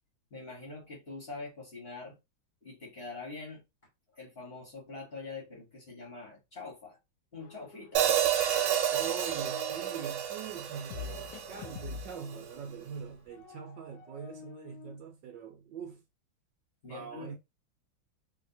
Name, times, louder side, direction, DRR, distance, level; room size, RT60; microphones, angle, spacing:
voice 1, 0.3-2.2 2.6-3.6 4.1-7.0 7.3-8.1 16.8-17.4, left 3 dB, 35° left, 1.3 m, -44 dB
sound 1, 7.4-8.2 8.4-10.1 10.9-15.0, left 6 dB, 80° left, 0.8 m, -47 dB
Hi-hat, 8.0-12.1, right 10 dB, 90° right, 1.5 m, -30 dB
voice 2, 8.9-16.0 16.9-17.4, right 7 dB, 70° right, 1.2 m, -43 dB
3.2 x 2.8 x 2.6 m
omnidirectional pair, 2.2 m